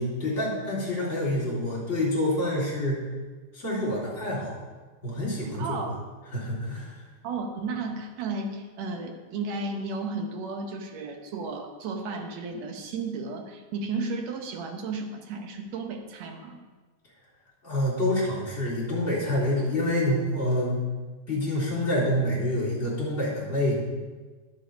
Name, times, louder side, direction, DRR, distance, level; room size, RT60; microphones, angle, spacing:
voice 1, 0.0-3.0 3.5-4.6 5.0-5.8 6.3-7.0 17.6-20.8 21.3-23.8, left 1 dB, 20° left, -6 dB, 3.9 m, -27 dB
voice 2, 5.6-6.0 7.2-16.6, right 3 dB, 70° right, 4 dB, 2.1 m, -33 dB
11.0 x 7.9 x 5.1 m, 1.3 s
omnidirectional pair, 3.4 m